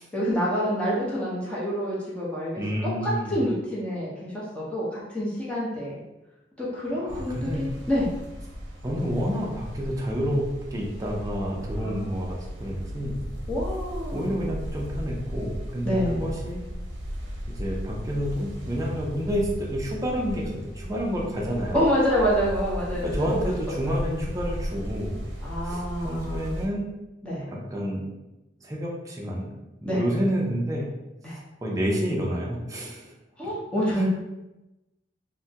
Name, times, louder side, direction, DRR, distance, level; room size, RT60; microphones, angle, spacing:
voice 1, 0.1-2.6 3.0-6.0 6.6-8.1 11.8-12.2 13.5-14.4 15.8-16.2 21.7-23.4 23.8-23.9 25.4-26.6 27.2-27.4 29.8-30.0 31.2-31.4 33.4-34.1, equal, 5° left, -8 dB, 0.8 m, -27 dB
voice 2, 2.6-3.4 7.0-7.6 8.8-13.2 14.1-16.6 17.5-21.8 23.0-25.2 25.6-26.9 27.5-28.0 28.6-29.5 29.8-30.9 31.6-33.1 33.9-34.1, equal, 20° right, -2 dB, 0.5 m, -29 dB
sound 1, 7.1-26.7, equal, 75° right, 0.6 m, -36 dB
3.3 x 2.1 x 2.7 m, 1.0 s
head